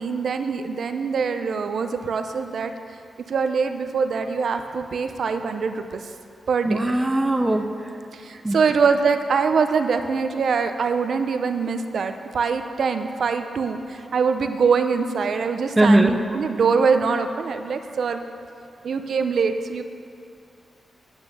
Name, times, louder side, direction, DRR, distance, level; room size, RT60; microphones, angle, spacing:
voice 1, 0.0-2.7 3.3-6.0 6.5-7.1 8.1-18.2 18.8-19.8, right 5 dB, 55° right, 8 dB, 0.6 m, -23 dB
voice 2, 6.6-7.7 8.4-8.6 15.8-16.2, right 1 dB, 10° right, 5 dB, 0.5 m, -19 dB
9.3 x 8.8 x 6.9 m, 2.5 s
wide cardioid pair, 175°, 0 cm